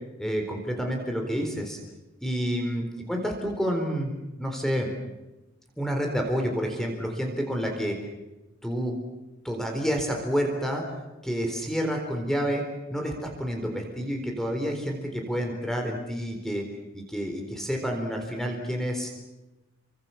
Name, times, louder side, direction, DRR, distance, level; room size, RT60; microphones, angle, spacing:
voice 1, 0.2-1.8 2.2-4.1 4.4-4.9 5.8-8.0 8.6-8.9 9.4-10.8 11.2-12.6 12.9-16.7 16.9-19.1, equal, ahead, 2 dB, 4.0 m, -29 dB
29.0 x 24.0 x 7.1 m, 1.0 s
head